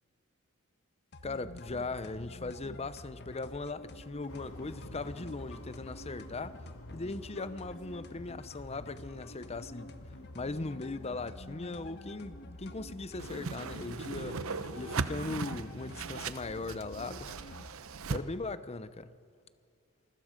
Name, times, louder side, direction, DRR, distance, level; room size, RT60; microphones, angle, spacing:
sound 1, 1.1-17.7, left 2 dB, 50° left, 1.3 m, -49 dB
voice 1, 1.2-6.6 6.9-10.0 10.3-14.5 14.7-17.3 18.1-19.1, left 3 dB, 30° left, 0.7 m, -39 dB
sound 2, 4.3-17.6, left 1 dB, 70° left, 1.9 m, -53 dB
Whoosh swoosh swish, 13.2-18.2, right 4 dB, 65° right, 0.8 m, -38 dB
27.5 x 20.5 x 5.2 m
head